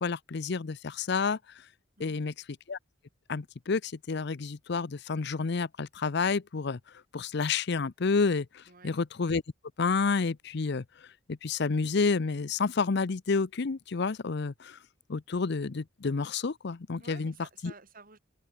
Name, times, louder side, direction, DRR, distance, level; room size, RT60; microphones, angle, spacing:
voice 1, 0.0-1.4 2.0-2.3 2.7-2.8 3.3-6.8 7.1-9.4 9.8-10.8 11.3-14.8 15.1-17.3 17.6-17.7, left 4 dB, 60° left, 0.6 m, -29 dB
voice 2, 2.0-2.4 8.7-9.0 17.0-18.2, right 3 dB, 45° right, 5.8 m, -52 dB
head